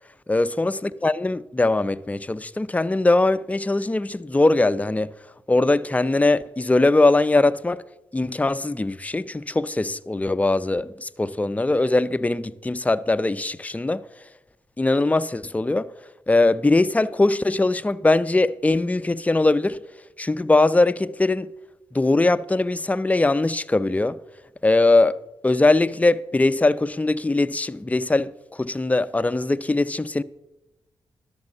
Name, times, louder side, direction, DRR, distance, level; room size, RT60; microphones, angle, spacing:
voice 1, 0.3-5.1 5.5-7.8 8.1-14.0 14.8-15.9 16.3-19.8 20.2-21.5 21.9-24.2 24.6-25.2 25.4-30.2, left 2 dB, 15° left, 0.5 m, -21 dB
12.0 x 6.1 x 6.9 m
supercardioid pair, 45°, 9 cm